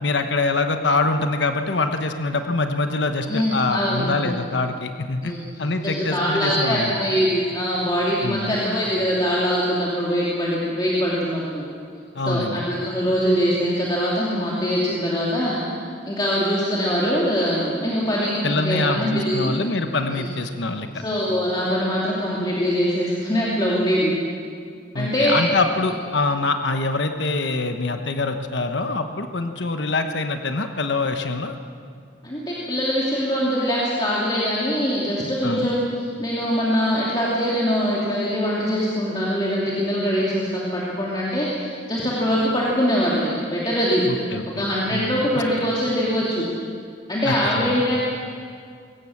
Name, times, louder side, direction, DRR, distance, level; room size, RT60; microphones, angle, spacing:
voice 1, 0.0-5.3 5.6-7.0 8.2-8.5 12.1-12.6 18.4-20.9 24.9-31.5 35.4-35.7 44.1-44.6 44.9-45.6 47.2-47.8, left 3 dB, 65° left, 6 dB, 1.1 m, -24 dB
voice 2, 3.3-4.3 5.2-5.4 5.8-11.6 12.3-15.6 16.1-19.5 20.1-20.3 21.0-24.1 24.9-25.4 32.2-44.0 44.5-46.5 47.1-48.0, equal, 20° left, -6 dB, 2.8 m, -23 dB
22.0 x 18.0 x 7.3 m, 2.2 s
head